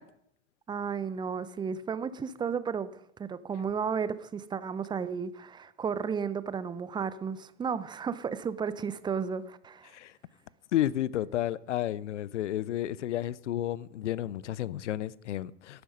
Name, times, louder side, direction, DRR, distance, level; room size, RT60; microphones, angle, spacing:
voice 1, 0.7-2.9 3.2-9.9, right 6 dB, 10° right, 0.5 m, -33 dB
voice 2, 10.7-15.8, left 12 dB, 70° left, 0.6 m, -31 dB
11.0 x 9.5 x 5.3 m
figure-of-eight pair, 90°, 37 cm